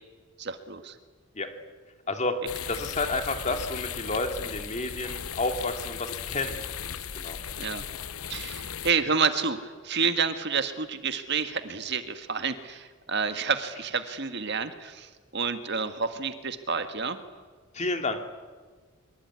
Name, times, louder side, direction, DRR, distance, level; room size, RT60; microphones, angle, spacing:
voice 1, 0.4-0.9 7.6-7.8 8.3-17.2, right 5 dB, 55° right, 9 dB, 1.7 m, -29 dB
sound 1, 2.5-8.9, left 8 dB, 85° left, 1.0 m, -37 dB
voice 2, 2.7-7.4 17.7-18.2, left 2 dB, 30° left, 6 dB, 2.6 m, -30 dB
24.0 x 24.0 x 9.7 m, 1.4 s
head